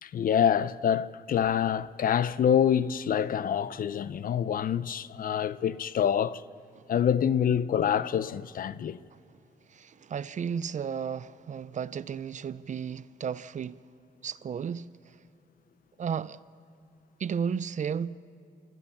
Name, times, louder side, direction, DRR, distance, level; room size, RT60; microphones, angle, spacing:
voice 1, 0.0-6.4 6.9-9.0, left 8 dB, 60° left, 0.6 m, -26 dB
voice 2, 9.7-13.8 14.2-14.9 16.0-16.4 17.2-18.2, right 7 dB, 45° right, 0.5 m, -33 dB
29.0 x 13.5 x 7.1 m
cardioid pair, 80°, 17 cm